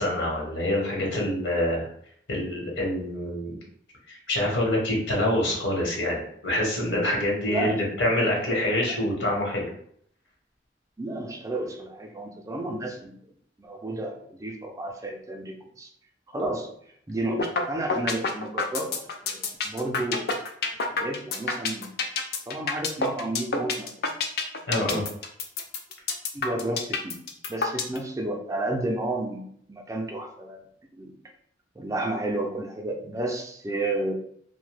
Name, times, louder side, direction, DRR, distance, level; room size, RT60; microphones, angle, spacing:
voice 1, 0.0-1.9 2.3-3.5 4.1-9.7 24.7-25.0, left 1 dB, 85° left, -2 dB, 1.0 m, -26 dB
voice 2, 7.5-7.8 8.9-9.0 11.0-13.2 13.6-15.9 16.3-16.7 17.1-18.9 19.2-20.3 20.8-22.0 22.5-23.9 24.7-25.0 26.3-27.2 27.5-30.6 30.9-31.1 31.8-34.1, right 2 dB, 20° right, 3 dB, 0.4 m, -31 dB
sound 1, 17.4-17.6 17.9-28.0, left 4 dB, 55° left, 0.4 m, -27 dB
2.7 x 2.1 x 3.2 m, 0.66 s
head